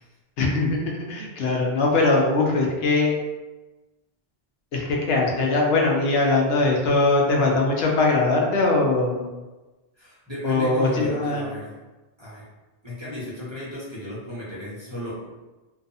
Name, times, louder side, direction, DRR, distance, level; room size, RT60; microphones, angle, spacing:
voice 1, 0.4-3.1 4.7-9.3 10.4-11.5, left 3 dB, 75° left, -1 dB, 0.8 m, -21 dB
voice 2, 10.0-11.7 12.2-12.4 12.8-15.2, left 1 dB, 30° right, -8 dB, 0.6 m, -34 dB
2.5 x 2.3 x 2.6 m, 1.1 s
omnidirectional pair, 1.1 m